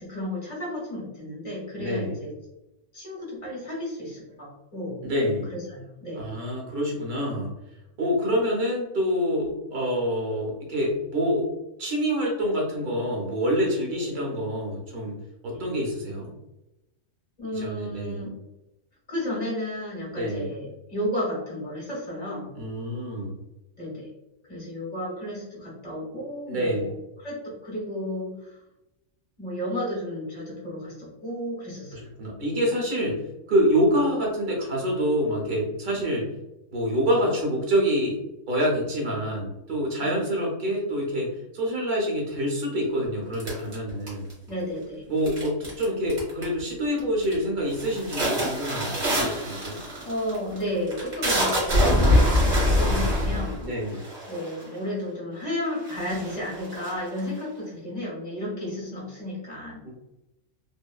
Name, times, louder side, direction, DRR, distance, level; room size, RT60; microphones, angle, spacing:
voice 1, 0.0-2.3 2.9-5.0 5.5-6.3 15.5-15.7 17.4-18.3 19.1-22.5 23.8-24.1 24.5-28.6 29.4-31.9 40.0-40.2 44.5-45.0 50.0-53.6 54.3-59.8, left 1 dB, 35° left, -5 dB, 1.1 m, -33 dB
voice 2, 1.8-2.2 5.0-5.5 6.2-7.5 8.0-11.5 11.8-15.2 15.4-16.3 17.5-18.2 20.2-20.5 22.6-23.4 26.5-26.9 31.9-33.2 33.5-36.3 36.7-38.2 38.5-44.3 45.1-49.8 53.6-54.0 59.8-59.9, equal, 45° right, -2 dB, 0.9 m, -26 dB
sound 1, 43.4-44.5 45.3-45.8 46.1-46.6 47.0-47.4 47.7-54.8 55.4-55.5 55.8-57.4, left 1 dB, 60° right, 1.5 m, -24 dB
3.6 x 2.0 x 2.3 m, 0.94 s
omnidirectional pair, 1.3 m